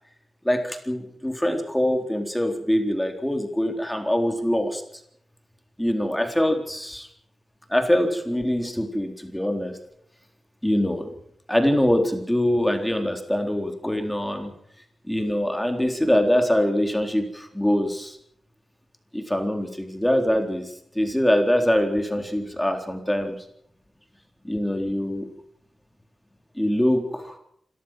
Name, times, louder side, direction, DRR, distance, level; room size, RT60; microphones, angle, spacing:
voice 1, 0.4-4.8 5.8-7.1 7.7-9.8 10.6-11.1 11.5-14.5 15.1-18.2 19.1-23.4 24.4-25.3 26.6-27.4, left 1 dB, 10° left, 5 dB, 3.9 m, -23 dB
26.5 x 14.0 x 7.6 m, 0.72 s
cardioid pair, 45°, 0 cm